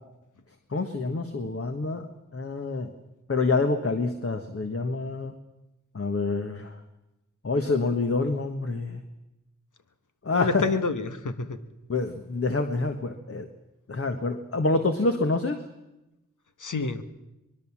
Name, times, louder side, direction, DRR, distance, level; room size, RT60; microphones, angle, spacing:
voice 1, 0.7-2.1 2.3-2.9 3.3-5.3 5.9-6.7 7.4-9.0 10.2-10.6 11.9-13.5 13.9-15.6, left 3 dB, 50° left, 6 dB, 1.6 m, -27 dB
voice 2, 10.3-11.6 16.6-17.0, left 4 dB, 75° left, 9 dB, 1.5 m, -28 dB
24.0 x 21.5 x 7.4 m, 0.95 s
wide cardioid pair, 75°, 30 cm